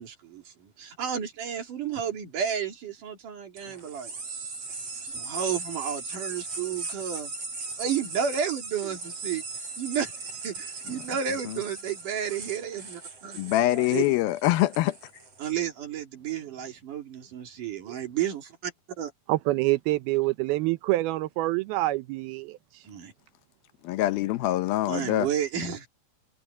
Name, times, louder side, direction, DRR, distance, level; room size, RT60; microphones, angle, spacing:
voice 1, 0.0-4.5 5.0-7.3 7.8-9.4 9.8-14.1 15.4-19.1 22.9-23.1 24.9-25.9, right 8 dB, 60° right, 4.2 m, -32 dB
sound 1, 3.6-15.5, right 3 dB, 40° right, 7.3 m, -38 dB
voice 2, 13.4-14.9 23.8-25.3, left 15 dB, 80° left, 2.6 m, -24 dB
voice 3, 19.3-22.6, right 18 dB, 85° right, 2.6 m, -26 dB
omnidirectional pair, 4.4 m